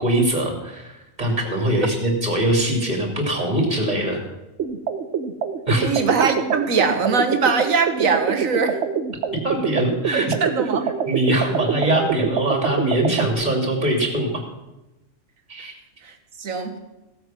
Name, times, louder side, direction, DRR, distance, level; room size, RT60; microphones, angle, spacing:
voice 1, 0.0-4.2 5.7-6.0 9.4-10.3 11.1-14.4 15.5-15.7, right 1 dB, 30° right, 1 dB, 3.1 m, -22 dB
sound 1, 4.6-13.3, right 6 dB, 65° right, 1.1 m, -25 dB
voice 2, 5.8-8.8 10.1-10.9 16.0-16.8, right 5 dB, 80° right, 5 dB, 1.8 m, -22 dB
16.0 x 8.2 x 6.0 m, 0.98 s
omnidirectional pair, 1.4 m